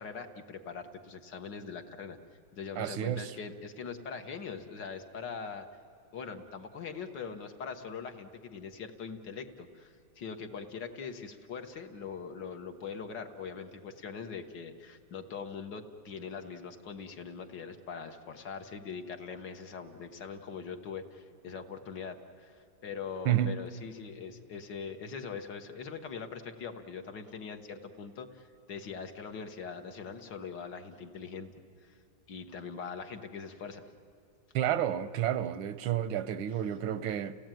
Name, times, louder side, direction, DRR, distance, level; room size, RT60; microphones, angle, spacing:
voice 1, 0.0-2.2 2.5-5.7 6.1-31.5 31.8-32.0 32.3-33.9, left 6 dB, 65° left, 1.9 m, -42 dB
voice 2, 2.8-3.3 23.2-23.6 34.5-37.4, right 11 dB, 85° right, 1.6 m, -30 dB
30.0 x 17.0 x 9.0 m
omnidirectional pair, 2.2 m